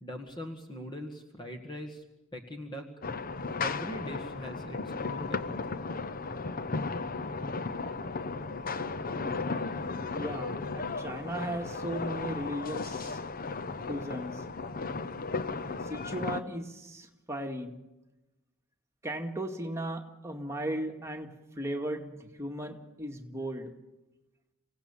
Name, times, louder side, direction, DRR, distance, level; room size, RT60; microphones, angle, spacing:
voice 1, 0.0-2.0 2.3-2.9 3.6-5.4, equal, 20° left, 4 dB, 1.9 m, -41 dB
sound 1, 3.0-16.4, left 4 dB, 40° left, 0.8 m, -35 dB
voice 2, 10.1-13.2 13.9-14.3 15.9-17.7 19.0-21.3 21.6-23.7, right 1 dB, 15° right, 2 dB, 2.1 m, -36 dB
27.0 x 17.5 x 7.2 m, 1.0 s
head